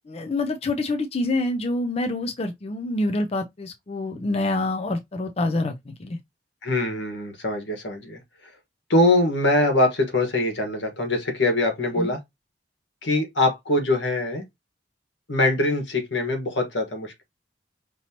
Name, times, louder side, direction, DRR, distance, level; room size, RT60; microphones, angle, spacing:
voice 1, 0.0-6.2 12.0-12.1, left 2 dB, 35° left, 0.5 m, -26 dB
voice 2, 6.6-8.2 8.9-12.2 13.0-14.4 15.3-17.2, left 2 dB, 85° left, 1.5 m, -23 dB
5.3 x 2.9 x 2.8 m
head